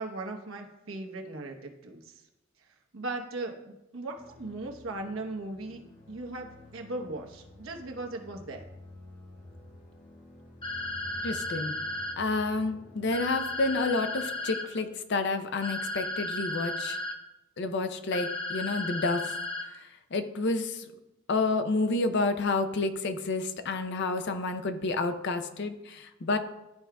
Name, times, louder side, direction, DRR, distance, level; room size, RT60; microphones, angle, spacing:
voice 1, 0.0-2.1 2.9-5.8 6.1-8.6, right 2 dB, 85° right, 3 dB, 1.0 m, -38 dB
sound 1, 4.1-14.8, left 1 dB, 45° left, 1.4 m, -51 dB
sound 2, 10.6-12.1 13.1-14.6 15.6-17.1 18.1-19.6, left 2 dB, 25° left, 1.0 m, -34 dB
voice 2, 11.2-11.7 12.2-17.0 17.6-19.3 19.7-20.9 21.3-26.4, left 3 dB, 60° left, 9 dB, 0.6 m, -29 dB
12.0 x 4.8 x 2.3 m, 0.95 s
head